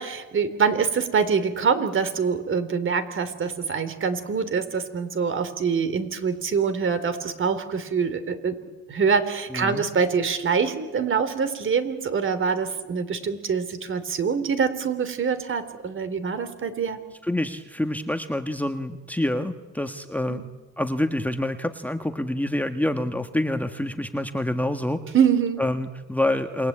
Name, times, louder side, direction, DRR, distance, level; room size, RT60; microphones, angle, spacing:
voice 1, 0.0-8.6 8.9-17.0 20.3-20.4 25.1-25.6, right 6 dB, 40° right, 11 dB, 3.5 m, -25 dB
voice 2, 9.5-9.8 17.2-20.5 20.8-25.0 25.6-26.7, left 1 dB, 5° left, 7 dB, 1.6 m, -27 dB
28.0 x 23.0 x 8.8 m, 1.2 s
cardioid pair, 105°, 30 cm